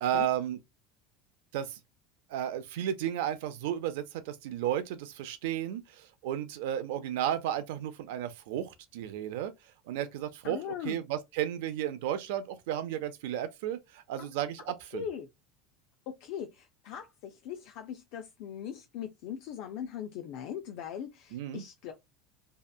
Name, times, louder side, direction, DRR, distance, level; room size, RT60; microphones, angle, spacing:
voice 1, 0.0-0.6 1.5-1.8 2.3-9.5 9.9-10.6 10.8-15.1 21.3-21.6, right 11 dB, 70° right, 0.4 m, -33 dB
voice 2, 10.4-11.0 14.2-14.3 14.9-15.3 16.1-21.9, left 9 dB, 55° left, 0.4 m, -40 dB
2.7 x 2.2 x 2.3 m
cardioid pair, 170°, 0 cm